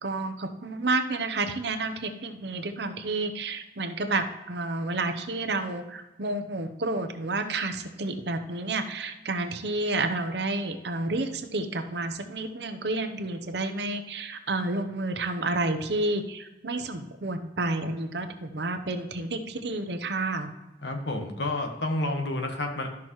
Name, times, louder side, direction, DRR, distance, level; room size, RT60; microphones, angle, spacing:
voice 1, 0.0-20.5, right 2 dB, 70° right, 8 dB, 0.8 m, -30 dB
voice 2, 20.8-22.9, left 2 dB, 75° left, 4 dB, 1.3 m, -30 dB
12.0 x 5.9 x 3.1 m, 1.0 s
head